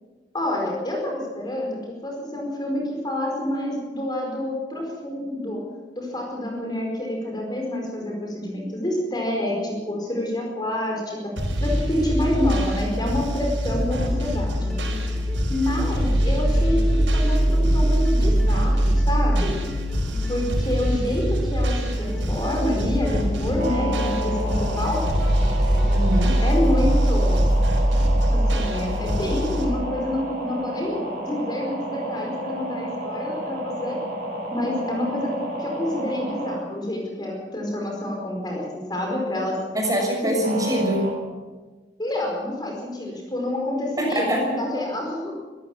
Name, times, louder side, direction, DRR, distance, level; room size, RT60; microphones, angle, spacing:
voice 1, 0.3-5.6 5.9-11.2 11.6-14.7 15.5-19.6 20.3-25.0 26.4-27.5 28.3-34.0 34.5-39.6 40.2-40.3 42.0-45.4, left 1 dB, 25° left, 0 dB, 4.9 m, -28 dB
sound 1, 11.4-29.7, equal, 90° right, 5.3 m, -22 dB
sound 2, 13.5-26.5, equal, 5° left, 4.7 m, -38 dB
sound 3, 23.6-36.6 40.4-41.1, right 1 dB, 45° right, 6.4 m, -31 dB
voice 2, 25.8-26.3 39.7-41.1 44.0-44.4, right 1 dB, 20° right, 0 dB, 6.1 m, -24 dB
25.0 x 14.5 x 7.4 m, 1.3 s
head